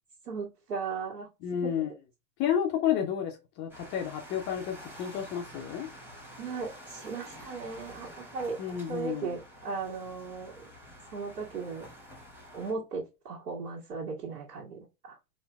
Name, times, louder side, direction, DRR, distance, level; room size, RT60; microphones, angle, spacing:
voice 1, 0.2-1.8 6.4-8.6 8.9-10.5 11.1-11.8 12.5-15.2, right 5 dB, 70° right, 1.7 m, -37 dB
voice 2, 1.4-1.9 2.4-5.9 8.6-9.4, left 9 dB, 25° left, 0.4 m, -31 dB
sound 1, 3.7-12.7, equal, 5° right, 1.1 m, -49 dB
4.2 x 2.5 x 2.3 m
figure-of-eight pair, 95°, 49 cm